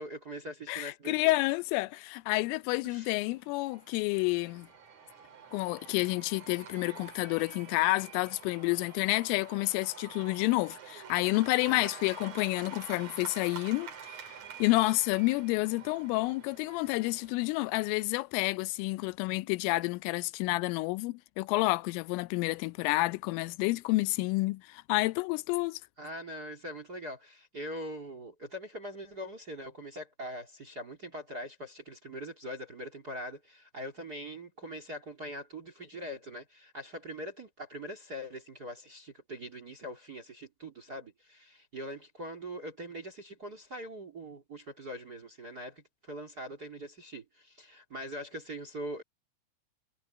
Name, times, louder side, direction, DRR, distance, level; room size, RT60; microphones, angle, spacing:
voice 1, 0.0-1.3 2.8-3.2 11.7-11.9 26.0-49.0, equal, 25° right, 2.3 m, -42 dB
voice 2, 0.7-4.7 5.5-14.2 14.6-25.8, left 22 dB, 85° left, 3.2 m, -29 dB
Cheering / Applause / Crowd, 3.3-18.0, right 6 dB, 45° right, 2.6 m, -48 dB
omnidirectional pair, 5.7 m